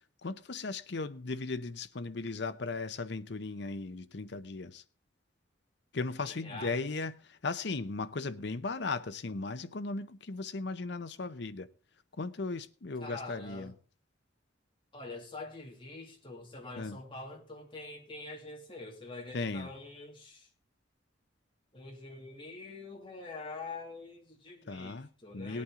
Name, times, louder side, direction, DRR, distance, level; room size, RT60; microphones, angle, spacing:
voice 1, 0.2-4.8 5.9-11.7 12.2-13.7 16.8-17.0 19.3-19.7 24.7-25.1 25.3-25.6, left 3 dB, 60° left, 0.7 m, -37 dB
voice 2, 6.2-6.9 13.0-13.7 14.9-20.5 21.7-25.6, left 3 dB, 25° left, 2.6 m, -45 dB
18.5 x 8.6 x 3.8 m
head